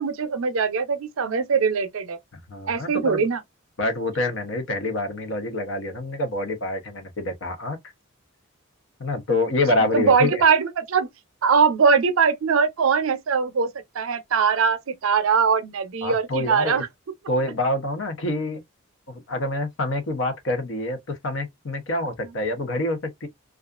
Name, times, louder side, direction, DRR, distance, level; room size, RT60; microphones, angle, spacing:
voice 1, 0.0-2.2 2.7-3.4 9.8-11.1 11.4-16.9 22.2-22.3, right 5 dB, 75° right, 0.5 m, -21 dB
voice 2, 2.5-3.2 3.8-7.8 9.0-10.4 16.0-16.8 17.3-18.6 19.1-23.3, left 2 dB, 65° left, 0.7 m, -26 dB
2.4 x 2.3 x 2.3 m
head